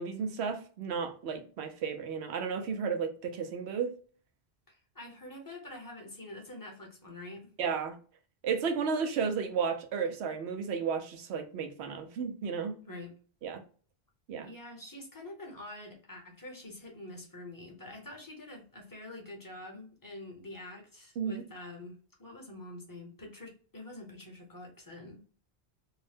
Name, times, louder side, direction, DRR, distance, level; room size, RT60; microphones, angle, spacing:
voice 1, 0.0-3.9 7.6-8.0 8.4-12.8 13.4-13.6 14.3-14.5 21.2-21.4, right 6 dB, 80° right, 0.9 m, -33 dB
voice 2, 4.7-7.5 12.8-13.2 14.4-25.2, left 1 dB, 20° left, 0.7 m, -46 dB
2.7 x 2.1 x 3.3 m
omnidirectional pair, 1.1 m